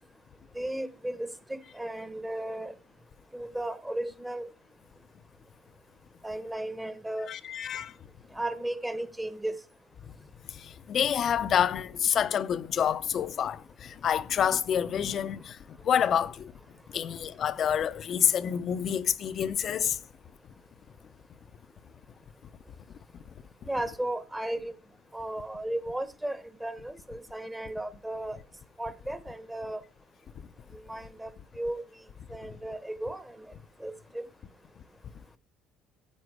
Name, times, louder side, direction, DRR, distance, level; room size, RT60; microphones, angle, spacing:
voice 1, 0.5-2.7 3.3-4.5 6.2-7.3 8.3-9.5 23.6-24.7 25.1-28.4 28.8-29.8 30.7-31.8 32.3-33.5 33.8-34.3, right 1 dB, 10° right, 1.0 m, -35 dB
voice 2, 7.3-7.9 10.5-16.5 16.9-20.0, left 9 dB, 45° left, 0.6 m, -28 dB
9.7 x 7.4 x 4.7 m
cardioid pair, 110°, 0 cm